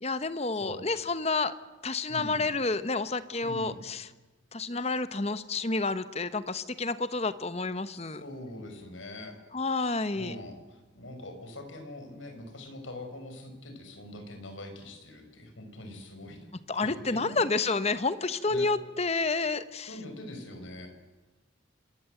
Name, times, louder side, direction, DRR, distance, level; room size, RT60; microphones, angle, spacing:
voice 1, 0.0-1.5 1.8-4.1 4.5-8.2 9.5-10.4 16.7-19.9, left 3 dB, 35° left, 13 dB, 1.1 m, -29 dB
voice 2, 2.1-2.4 3.4-3.7 8.1-9.4 10.1-16.5 16.8-17.4 18.5-18.7 19.8-20.9, left 1 dB, 80° left, 6 dB, 5.6 m, -43 dB
26.5 x 21.0 x 8.0 m, 1.2 s
head